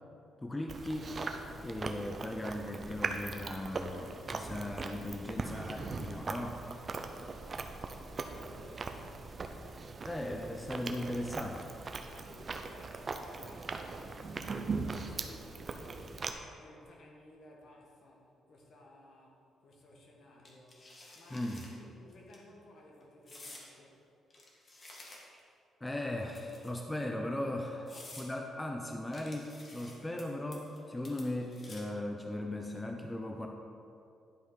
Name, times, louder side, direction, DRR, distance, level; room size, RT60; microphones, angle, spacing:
voice 1, 0.4-1.2 1.6-6.6 10.1-11.6 21.3-21.7 25.8-27.8 28.2-33.5, left 1 dB, 15° left, 2 dB, 0.6 m, -38 dB
Chewing mastication, 0.7-16.3, right 4 dB, 40° right, 0.6 m, -40 dB
voice 2, 7.3-7.7 8.1-9.6 10.3-10.5 12.1-20.9 21.1-24.1 27.8-28.3, left 1 dB, 60° left, -1 dB, 1.5 m, -58 dB
sound 1, 20.4-21.7 22.1-22.4 23.3-23.7 24.3-25.5 26.3-26.9 27.4-27.5 27.9-28.3 29.1-30.2 30.5-30.8 31.0-32.0, left 2 dB, 40° left, 1.7 m, -51 dB
11.0 x 4.9 x 4.0 m, 2.6 s
cardioid pair, 90°, 0 cm